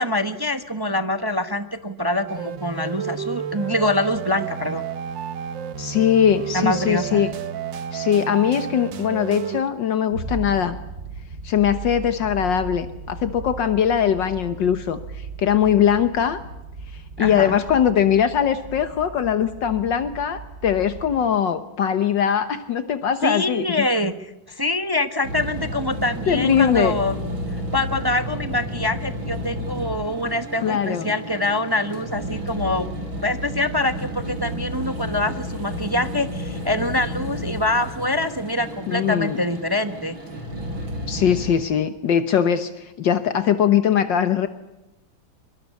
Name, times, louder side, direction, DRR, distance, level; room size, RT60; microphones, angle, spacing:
voice 1, 0.0-4.8 6.5-7.3 17.2-17.5 23.2-27.2 27.7-32.9 33.2-40.2, left 1 dB, 20° right, 10 dB, 0.7 m, -25 dB
sound 1, 2.3-9.6, right 8 dB, 70° right, 1.9 m, -31 dB
voice 2, 5.8-7.3 7.9-10.8 11.4-16.4 16.9-23.9 26.3-27.0 30.6-31.1 38.9-39.4 41.1-44.5, left 9 dB, 70° left, 11 dB, 1.7 m, -21 dB
sound 2, 10.1-21.3, right 4 dB, 50° right, 2.3 m, -37 dB
sound 3, 25.2-41.5, equal, 90° right, 6.5 m, -32 dB
24.0 x 23.0 x 8.3 m, 0.94 s
omnidirectional pair, 2.1 m